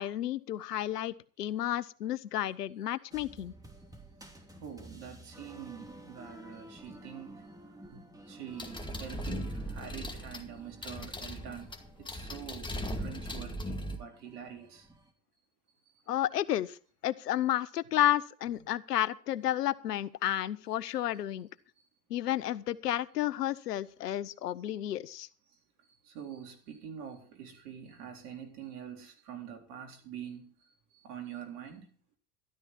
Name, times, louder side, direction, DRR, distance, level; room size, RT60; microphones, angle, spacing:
voice 1, 0.0-3.5 16.1-16.8 17.0-21.5 22.1-25.3, left 12 dB, 85° left, 0.8 m, -31 dB
sound 1, 3.1-15.1, right 1 dB, 10° right, 3.0 m, -53 dB
voice 2, 4.6-7.4 7.9-8.0 8.3-11.7 12.0-12.7 13.0-14.9 17.8-18.1 18.4-18.7 26.0-30.5 31.0-31.9, right 8 dB, 70° right, 4.0 m, -45 dB
sound 2, 8.6-14.0, equal, 10° left, 2.1 m, -38 dB
13.0 x 13.0 x 4.2 m
hypercardioid pair, 80°, 47 cm